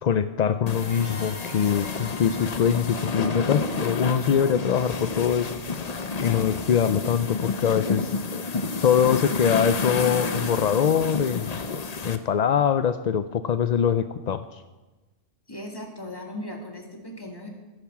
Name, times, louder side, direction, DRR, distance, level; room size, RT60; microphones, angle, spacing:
voice 1, 0.0-5.5 6.2-8.1 8.8-11.6 12.0-14.6, left 8 dB, 55° left, 11 dB, 0.4 m, -23 dB
sound 1, 0.7-12.2, left 4 dB, 40° left, 0.8 m, -30 dB
sound 2, 0.8-5.3, equal, 40° right, 4.4 m, -44 dB
voice 2, 15.5-17.5, left 1 dB, 20° left, 1 dB, 2.4 m, -37 dB
14.0 x 10.5 x 7.3 m, 1.2 s
omnidirectional pair, 1.2 m